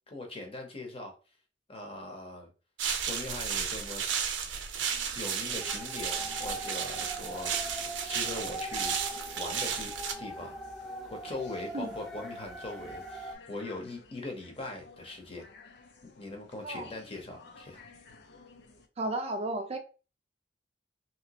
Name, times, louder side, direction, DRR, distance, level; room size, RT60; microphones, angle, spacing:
voice 1, 0.1-1.1 1.7-2.5 3.0-4.0 5.1-7.8 8.0-9.0 9.4-9.9 10.2-10.6 11.0-15.5 16.0-17.9, left 2 dB, 30° left, 0.9 m, -41 dB
sound 1, 2.8-10.1, right 7 dB, 85° right, 0.6 m, -33 dB
sound 2, 4.9-18.9, left 4 dB, 70° left, 0.6 m, -55 dB
sound 3, 5.6-13.3, right 1 dB, 5° left, 0.7 m, -41 dB
voice 2, 19.0-19.8, right 2 dB, 35° right, 0.4 m, -33 dB
3.0 x 3.0 x 2.9 m
head